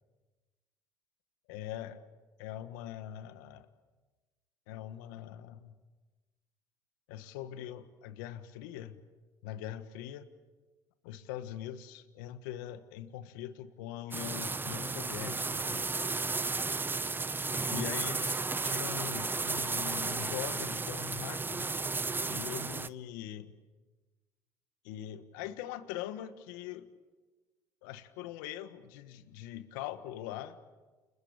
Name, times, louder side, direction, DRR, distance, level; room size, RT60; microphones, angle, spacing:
voice 1, 1.5-2.0 2.4-3.7 4.7-5.7 7.1-9.0 9.4-10.3 11.0-15.9 17.7-21.7 22.3-23.5 24.8-26.9 27.8-30.6, left 11 dB, 85° left, 11 dB, 1.5 m, -42 dB
sound 1, 14.1-22.9, right 3 dB, 20° right, 0.9 m, -34 dB
29.5 x 21.5 x 8.8 m, 1.3 s
supercardioid pair, 70°, 10 cm